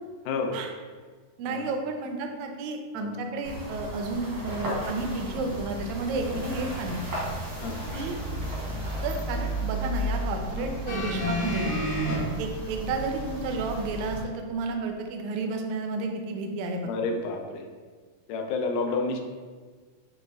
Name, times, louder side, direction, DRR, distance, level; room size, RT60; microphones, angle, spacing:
voice 1, 0.3-0.6 1.5-1.6 2.9-3.1 6.3-6.4 7.6-7.8 10.6-10.7 12.1-12.3 16.8-17.7 18.3-19.2, left 3 dB, 90° left, 3 dB, 2.1 m, -30 dB
voice 2, 1.4-7.0 7.9-8.2 9.0-11.7 12.4-16.9, right 3 dB, 80° right, 3 dB, 1.6 m, -32 dB
sound 1, 3.4-14.2, right 1 dB, 65° right, 0.9 m, -34 dB
sound 2, 10.9-12.2 13.2-13.3, equal, 70° left, 1.3 m, -29 dB
6.7 x 2.4 x 2.3 m, 1.5 s
omnidirectional pair, 3.5 m